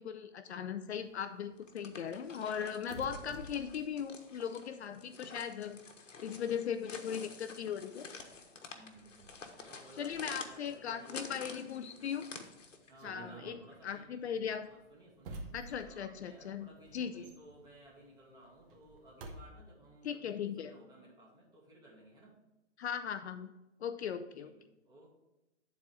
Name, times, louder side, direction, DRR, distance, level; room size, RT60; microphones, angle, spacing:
voice 1, 0.0-5.8 6.2-8.1 10.0-12.3 13.0-13.6 13.8-14.7 15.5-16.7 16.9-17.2 20.0-20.7 22.8-23.5 23.8-24.5, left 8 dB, 60° left, 9 dB, 0.6 m, -38 dB
sound 1, 0.8-5.2 5.5-19.4, right 2 dB, 45° right, 1.3 m, -53 dB
sound 2, 1.6-12.9, left 4 dB, 90° left, 1.3 m, -50 dB
voice 2, 8.7-11.5 12.9-15.5 15.8-22.4 24.1-25.1, right 1 dB, 10° right, -5 dB, 2.3 m, -58 dB
10.0 x 4.3 x 4.9 m, 1.0 s
hypercardioid pair, 140°, 37 cm